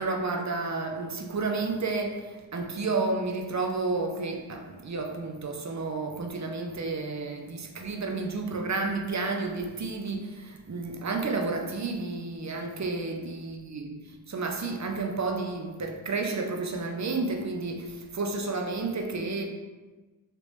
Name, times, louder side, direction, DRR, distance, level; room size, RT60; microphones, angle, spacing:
voice 1, 0.0-13.9 14.3-19.4, right 3 dB, 40° right, 3 dB, 0.5 m, -31 dB
3.0 x 3.0 x 3.1 m, 1.3 s
cardioid pair, 45°, 45 cm